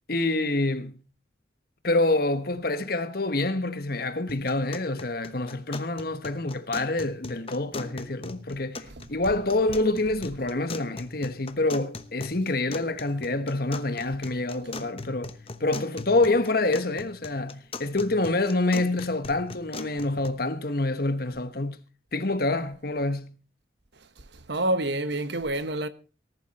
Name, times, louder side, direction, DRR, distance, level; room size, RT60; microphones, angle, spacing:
voice 1, 0.1-1.0 1.8-15.3 15.6-21.8 22.1-23.4, left 2 dB, 55° left, 1.3 m, -27 dB
sound 1, 4.3-20.3, left 3 dB, 30° left, 1.0 m, -41 dB
voice 2, 24.2-25.9, right 1 dB, 65° right, 1.2 m, -28 dB
19.0 x 11.0 x 4.3 m
head